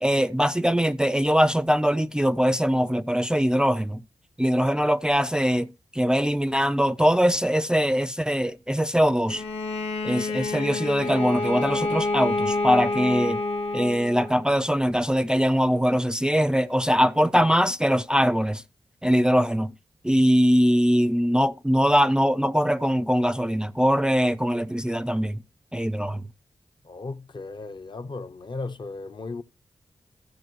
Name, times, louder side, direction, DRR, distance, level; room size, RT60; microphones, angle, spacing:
voice 1, 0.0-4.0 4.4-5.7 5.9-9.4 10.0-13.4 13.7-18.6 19.0-19.7 20.0-25.4 25.7-26.3, equal, 5° right, 0.4 m, -22 dB
Bowed string instrument, 9.3-14.4, left 2 dB, 75° left, 1.6 m, -28 dB
voice 2, 26.8-29.4, left 3 dB, 45° left, 0.7 m, -36 dB
14.5 x 6.8 x 3.0 m
wide cardioid pair, 95°, 11 cm